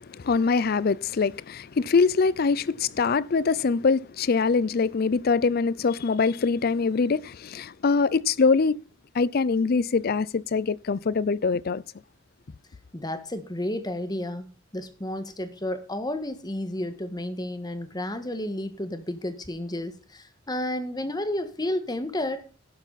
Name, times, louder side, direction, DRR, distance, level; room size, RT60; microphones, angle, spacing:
voice 1, 0.0-8.8 9.1-11.8, left 4 dB, 50° left, 0.5 m, -23 dB
voice 2, 12.9-14.5 14.7-22.4, left 1 dB, 20° left, 1.5 m, -31 dB
11.5 x 11.5 x 4.1 m
head